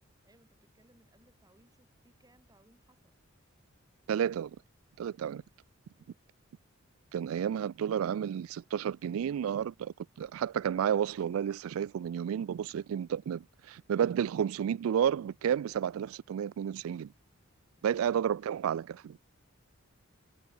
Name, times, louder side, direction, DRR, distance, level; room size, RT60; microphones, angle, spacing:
voice 1, 0.2-3.2 5.9-6.1, right 1 dB, 20° right, 5.7 m, -66 dB
voice 2, 4.1-4.5 5.0-5.4 7.1-17.1 17.8-19.2, right 8 dB, 85° right, 0.3 m, -31 dB
head